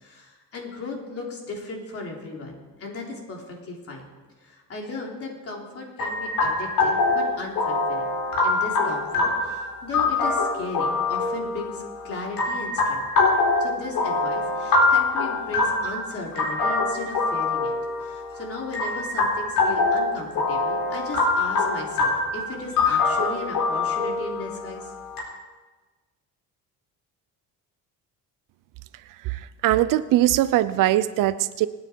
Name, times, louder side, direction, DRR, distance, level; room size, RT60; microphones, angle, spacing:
voice 1, 0.0-4.1 4.4-8.2 8.4-13.1 13.6-17.7 18.0-24.9, left 3 dB, 40° left, -1 dB, 3.6 m, -36 dB
sound 1, 6.0-25.2, left 3 dB, 75° left, 4.0 m, -24 dB
voice 2, 29.2-31.7, right 14 dB, 70° right, 14 dB, 0.7 m, -21 dB
26.5 x 9.6 x 4.6 m, 1.3 s
cardioid pair, 140°, 34 cm